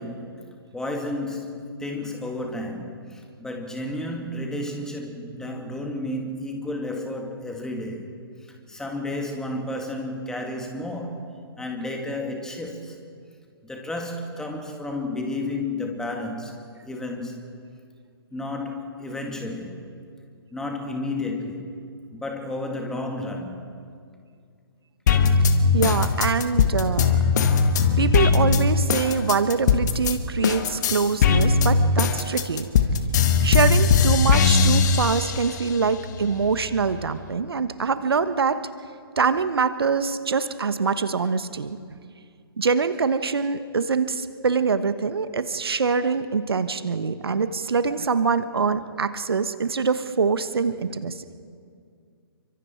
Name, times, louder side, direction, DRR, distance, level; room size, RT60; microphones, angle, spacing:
voice 1, 0.0-8.2 8.7-11.3 11.6-13.0 13.6-16.6 16.8-17.4 18.3-19.8 20.5-21.8 22.1-23.7, left 2 dB, 5° left, 2 dB, 2.3 m, -32 dB
sound 1, 25.1-30.1 30.4-35.6 36.1-37.1, left 5 dB, 45° left, 1.8 m, -20 dB
voice 2, 25.7-27.2 28.0-32.7 33.4-38.7 39.2-41.8 42.6-51.1, right 5 dB, 70° right, 11 dB, 1.2 m, -24 dB
29.5 x 24.5 x 4.6 m, 2.3 s
figure-of-eight pair, 130°, 13 cm